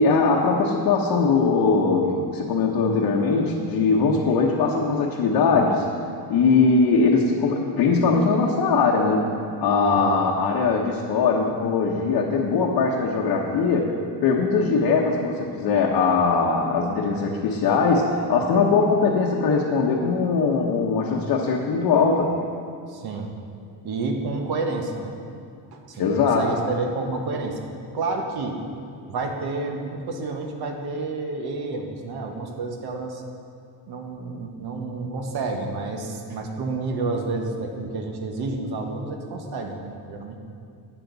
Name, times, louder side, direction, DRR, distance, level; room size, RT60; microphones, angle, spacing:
voice 1, 0.0-5.9 6.3-9.3 9.6-13.9 14.2-22.4 26.0-26.5, left 4 dB, 65° left, -2 dB, 1.1 m, -21 dB
voice 2, 9.8-10.1 22.9-23.3 23.8-25.1 25.7-26.1 26.4-27.6 27.9-28.6 29.1-33.2 33.9-40.4, right 3 dB, 65° right, 3 dB, 1.4 m, -30 dB
12.0 x 8.7 x 4.0 m, 2.4 s
cardioid pair, 125°, 42 cm